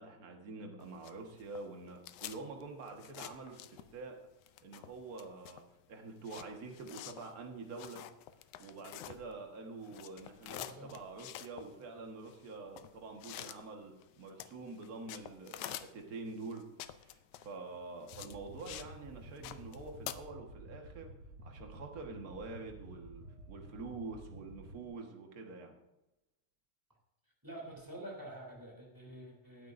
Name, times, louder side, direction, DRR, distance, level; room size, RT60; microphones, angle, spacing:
voice 1, 0.0-4.2 4.6-5.6 5.9-8.0 8.6-16.7 17.0-21.1 21.4-25.8, right 3 dB, 40° right, 2 dB, 1.5 m, -46 dB
sound 1, 0.8-4.1 4.4-9.6 9.8-18.9 19.2-20.1, left 13 dB, 85° left, 2.0 m, -48 dB
voice 2, 10.5-10.9 19.4-19.5 27.4-29.7, right 1 dB, 5° right, -1 dB, 2.7 m, -48 dB
sound 2, 18.1-24.9, right 1 dB, 85° right, 6.1 m, -52 dB
19.0 x 9.3 x 2.7 m, 0.94 s
omnidirectional pair, 3.4 m